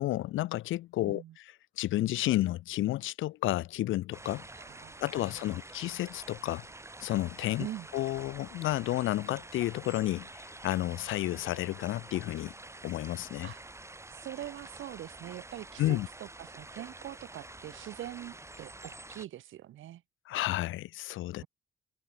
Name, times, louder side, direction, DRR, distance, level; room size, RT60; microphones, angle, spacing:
voice 1, 0.0-1.2 1.8-4.4 5.0-6.6 7.0-7.7 7.9-12.5 12.8-13.5 15.8-16.1 20.3-21.4, left 16 dB, 85° left, 1.0 m, -31 dB
voice 2, 1.0-1.4 4.5-5.6 7.6-7.9 13.4-13.6 14.1-20.0 21.4-21.5, right 13 dB, 80° right, 7.7 m, -43 dB
sound 1, 4.1-19.3, right 2 dB, 15° right, 6.2 m, -48 dB
cardioid pair, 90°, 20 cm